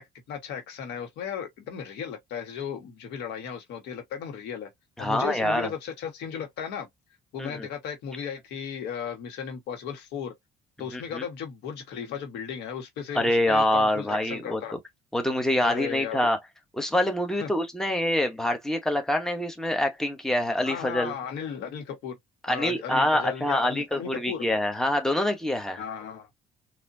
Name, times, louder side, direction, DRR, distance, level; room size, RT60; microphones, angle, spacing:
voice 1, 0.0-4.7 5.0-6.9 7.3-10.3 10.8-14.7 15.6-16.3 17.4-17.5 20.6-22.2 22.5-24.5 25.8-26.3, left 7 dB, 80° left, 1.4 m, -35 dB
voice 2, 5.0-5.7 7.4-7.7 10.9-11.2 13.1-14.6 15.1-16.4 16.8-21.1 22.4-25.8, left 1 dB, 5° left, 1.0 m, -25 dB
4.1 x 2.6 x 2.7 m
cardioid pair, 110°, 17 cm